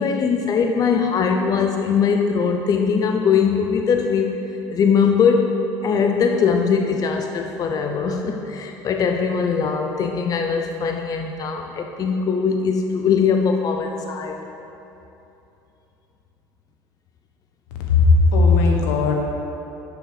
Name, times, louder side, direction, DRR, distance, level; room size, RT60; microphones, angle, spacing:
voice 1, 0.0-5.6 5.8-14.5, left 6 dB, 40° left, 4 dB, 0.7 m, -21 dB
voice 2, 17.9-19.2, left 3 dB, 85° left, 1 dB, 1.4 m, -16 dB
10.0 x 6.8 x 4.9 m, 3.0 s
supercardioid pair, 85°, 9 cm